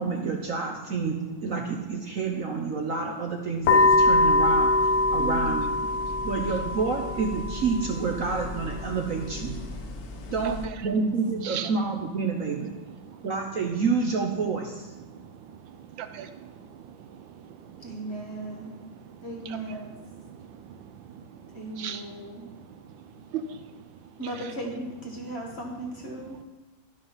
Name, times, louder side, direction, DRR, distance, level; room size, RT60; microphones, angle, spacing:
voice 1, 0.0-5.7 6.2-9.6 10.3-10.6 10.8-12.7 13.2-14.9, right 4 dB, 55° right, 2 dB, 1.0 m, -28 dB
sound 1, 3.6-10.6, left 2 dB, 60° left, 1.1 m, -25 dB
voice 2, 5.2-5.7 10.3-10.6 17.8-18.8 19.2-20.0 21.5-22.5 24.2-26.4, right 1 dB, 40° left, 0 dB, 1.2 m, -36 dB
voice 3, 10.1-10.5 11.4-11.7 15.1-16.3 17.0-20.3 20.6-22.7 23.3-23.7 24.3-24.5, right 8 dB, 75° right, 9 dB, 1.4 m, -40 dB
11.5 x 5.2 x 5.6 m, 1.1 s
omnidirectional pair, 2.1 m